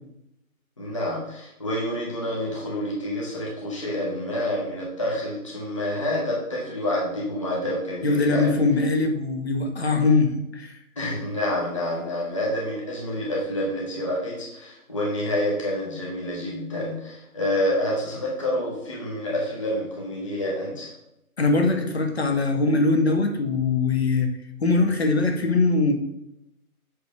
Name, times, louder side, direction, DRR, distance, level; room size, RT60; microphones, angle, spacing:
voice 1, 0.8-8.6 11.0-20.9, left 1 dB, 20° left, -4 dB, 0.9 m, -28 dB
voice 2, 8.0-10.7 21.4-24.3 24.6-25.9, left 3 dB, 45° left, 5 dB, 1.0 m, -22 dB
7.9 x 3.3 x 5.3 m, 0.84 s
hypercardioid pair, 170°, 44 cm